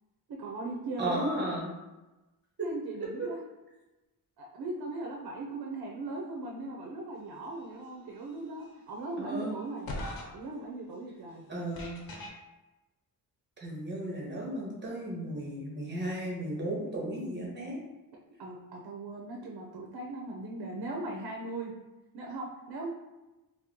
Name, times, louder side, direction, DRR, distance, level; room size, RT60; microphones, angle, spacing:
voice 1, 0.3-1.4 2.6-3.4 4.4-9.9 10.3-11.5 18.4-21.7 22.1-22.9, right 2 dB, 85° right, -1 dB, 0.7 m, -38 dB
voice 2, 1.0-1.7 9.2-9.6 11.5-12.0 13.6-17.8, right 1 dB, 30° right, -4 dB, 1.1 m, -35 dB
sound 1, 8.6-8.7 9.9-10.2 11.8-12.3, left 1 dB, 70° left, 0.8 m, -37 dB
4.4 x 2.2 x 3.6 m, 1.1 s
wide cardioid pair, 155°, 37 cm